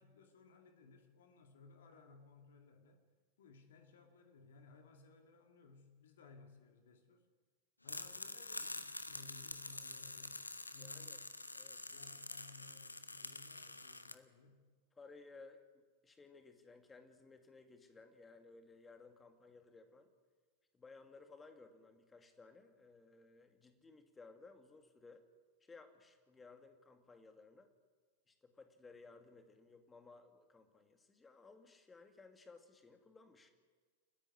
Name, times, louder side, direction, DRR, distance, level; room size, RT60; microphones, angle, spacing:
voice 1, 0.0-3.0 3.4-7.3 7.8-10.4 10.7-11.2 11.6-14.6, left 4 dB, 60° left, 5 dB, 2.2 m, -61 dB
sound 1, 7.9-14.1, left 2 dB, 80° left, 1.0 m, -47 dB
voice 2, 10.8-11.2 11.5-11.9 14.1-14.3 15.0-20.1 20.7-25.2 25.6-27.7 28.3-33.5, left 3 dB, 15° left, 6 dB, 2.3 m, -59 dB
29.5 x 10.5 x 9.9 m, 1.5 s
figure-of-eight pair, 90°, 0 cm